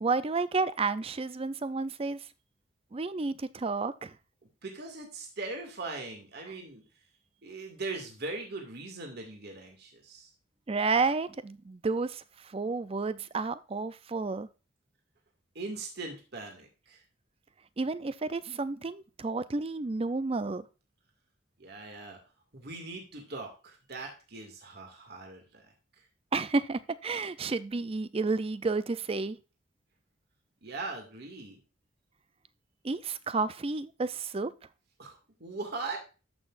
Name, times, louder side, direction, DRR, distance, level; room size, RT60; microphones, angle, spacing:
voice 1, 0.0-2.2 2.9-4.1 10.7-14.5 17.8-20.6 26.3-29.4 32.8-34.5, right 3 dB, 30° right, 0.5 m, -31 dB
voice 2, 4.6-6.8 7.4-10.3 15.5-17.0 21.6-22.2 22.5-26.0 30.6-31.6 35.0-36.0, right 3 dB, 55° right, 2.2 m, -40 dB
13.5 x 6.0 x 2.5 m
head